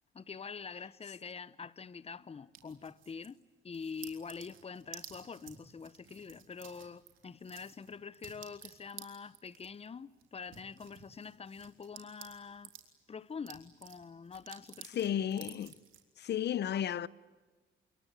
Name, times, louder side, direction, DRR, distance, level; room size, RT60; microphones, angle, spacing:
voice 1, 0.1-12.7 13.1-15.2, left 5 dB, 30° left, 0.9 m, -45 dB
sound 1, 2.5-3.4 3.7-12.9 13.3-16.0, right 10 dB, 85° right, 3.7 m, -53 dB
voice 2, 15.0-15.7 16.2-17.1, left 10 dB, 60° left, 0.8 m, -33 dB
27.5 x 22.5 x 9.6 m
cardioid pair, 90°, 20 cm